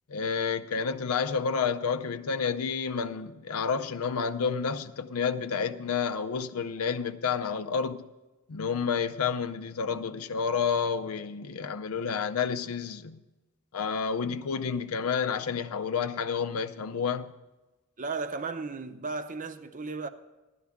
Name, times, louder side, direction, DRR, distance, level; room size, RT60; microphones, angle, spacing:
voice 1, 0.1-8.1 8.5-13.2 13.7-17.3, left 6 dB, 80° left, 0.5 m, -30 dB
voice 2, 18.0-20.1, right 4 dB, 40° right, 0.7 m, -35 dB
15.5 x 12.0 x 3.6 m
head